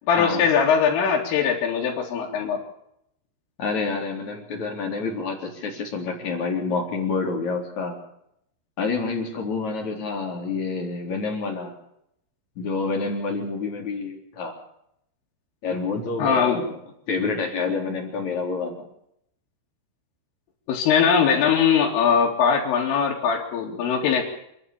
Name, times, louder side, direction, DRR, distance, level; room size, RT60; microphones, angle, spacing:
voice 1, 0.1-2.6 16.2-16.6 20.7-24.2, left 7 dB, 85° left, -4 dB, 5.2 m, -21 dB
voice 2, 3.6-8.0 8.8-11.7 12.6-14.6 15.6-16.8 17.1-18.8, left 4 dB, 40° left, 2 dB, 4.5 m, -28 dB
28.0 x 11.0 x 8.6 m, 0.75 s
omnidirectional pair, 5.6 m